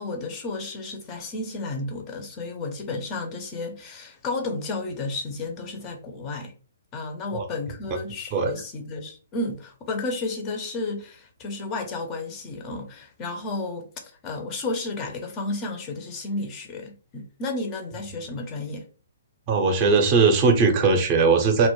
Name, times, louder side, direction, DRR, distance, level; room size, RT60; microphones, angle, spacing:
voice 1, 0.0-6.5 6.9-18.9, left 3 dB, 25° left, 0.4 m, -32 dB
voice 2, 19.5-21.7, right 4 dB, 30° right, 0.5 m, -19 dB
2.1 x 2.0 x 2.9 m
figure-of-eight pair, 125°, 0 cm